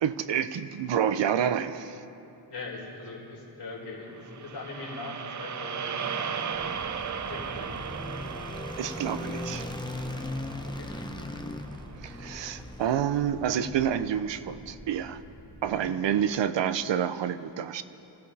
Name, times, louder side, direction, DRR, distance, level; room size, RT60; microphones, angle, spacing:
voice 1, 0.0-2.0 8.8-9.7 12.0-15.2 15.6-17.8, right 9 dB, 85° right, 12 dB, 0.7 m, -28 dB
voice 2, 2.5-6.1 7.0-7.8 10.7-10.9 11.2-11.3 15.7-16.1, left 3 dB, 70° left, -3 dB, 3.8 m, -41 dB
sound 1, 4.2-12.5, right 7 dB, 45° right, 0.5 m, -37 dB
sound 2, 5.3-13.7, left 2 dB, 10° left, 0.7 m, -39 dB
sound 3, 6.5-15.7, equal, 20° right, 3.3 m, -47 dB
27.0 x 15.5 x 3.4 m, 2.8 s
wide cardioid pair, 170°, 43 cm